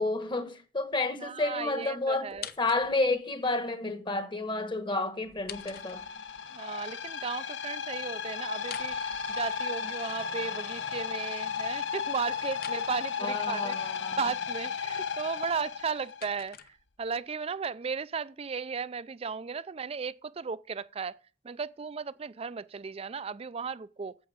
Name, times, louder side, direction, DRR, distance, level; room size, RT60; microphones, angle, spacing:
voice 1, 0.0-6.1 13.2-14.2, left 2 dB, 25° left, 1.2 m, -30 dB
voice 2, 1.2-2.5 6.5-9.0 9.3-13.8 14.2-21.2 21.4-24.2, right 5 dB, 35° right, 0.4 m, -35 dB
sound 1, 2.3-3.2 5.2-6.4 8.6-9.9 12.5-12.9 15.6-17.2, left 9 dB, 55° left, 0.7 m, -46 dB
sound 2, 5.5-16.3, left 6 dB, 90° left, 0.9 m, -35 dB
8.6 x 7.7 x 7.9 m
head